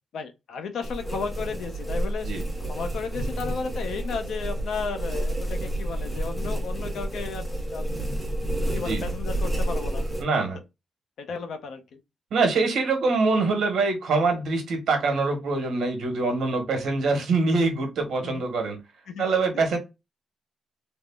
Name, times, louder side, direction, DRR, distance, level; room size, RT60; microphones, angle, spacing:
voice 1, 0.1-2.3 2.7-7.9 8.7-10.0 11.2-12.0 18.2-18.4 19.1-19.3, left 5 dB, 75° left, 0.6 m, -34 dB
sound 1, 0.8-10.2, right 1 dB, 5° left, 0.7 m, -30 dB
voice 2, 8.7-9.1 10.2-10.6 12.3-18.8 19.2-19.8, right 3 dB, 80° right, 1.1 m, -24 dB
3.4 x 2.1 x 2.3 m
wide cardioid pair, 170°, 0 cm